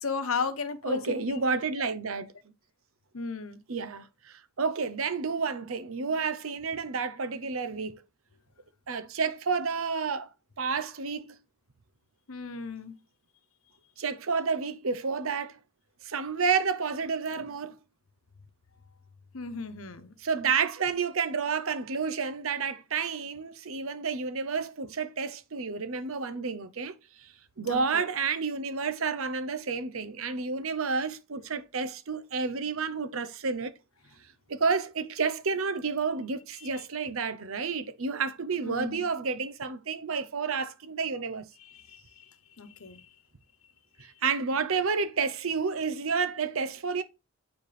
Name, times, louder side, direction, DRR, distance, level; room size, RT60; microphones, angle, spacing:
voice 1, 0.0-1.6 3.1-3.6 12.3-13.0 19.3-20.1 27.6-28.1 38.6-39.0 41.6-42.2 42.6-43.1, left 5 dB, 75° left, 1.0 m, -35 dB
voice 2, 0.8-2.3 3.7-8.0 8.9-10.3 10.6-11.3 14.0-15.5 16.0-17.8 20.2-26.9 27.2-27.3 27.6-33.7 34.5-41.5 44.0-47.0, right 5 dB, 75° right, 0.8 m, -30 dB
9.3 x 4.5 x 3.3 m
head